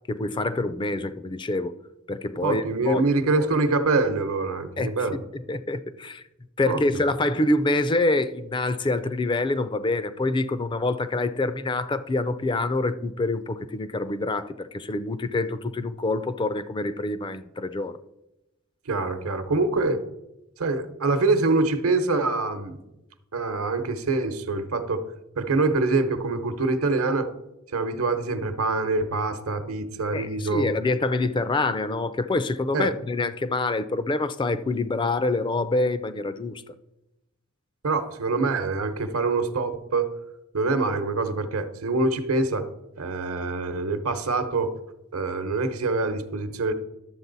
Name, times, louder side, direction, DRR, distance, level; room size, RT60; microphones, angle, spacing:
voice 1, 0.1-1.8 2.1-3.1 4.8-5.0 5.3-6.2 6.6-18.0 30.1-36.7, left 2 dB, 20° left, 0.4 m, -26 dB
voice 2, 2.4-5.2 6.7-6.8 18.9-20.0 20.6-22.8 23.3-25.0 25.4-27.3 27.7-30.7 32.7-32.9 37.8-40.1 40.5-42.7 43.0-44.8 45.1-46.7, right 3 dB, 80° right, 0.9 m, -25 dB
11.0 x 7.5 x 4.0 m
head